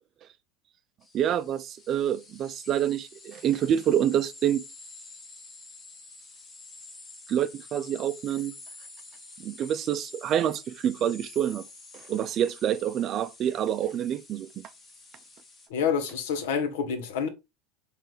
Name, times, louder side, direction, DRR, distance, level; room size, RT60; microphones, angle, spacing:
sound 1, 1.0-15.7, left 3 dB, 25° left, 1.0 m, -48 dB
voice 1, 1.1-4.6 7.3-8.5 9.4-11.7 11.9-14.5, right 10 dB, 40° right, 0.4 m, -27 dB
voice 2, 15.7-17.3, left 6 dB, 90° left, 0.8 m, -28 dB
3.9 x 3.3 x 3.0 m
supercardioid pair, 135°, 0 cm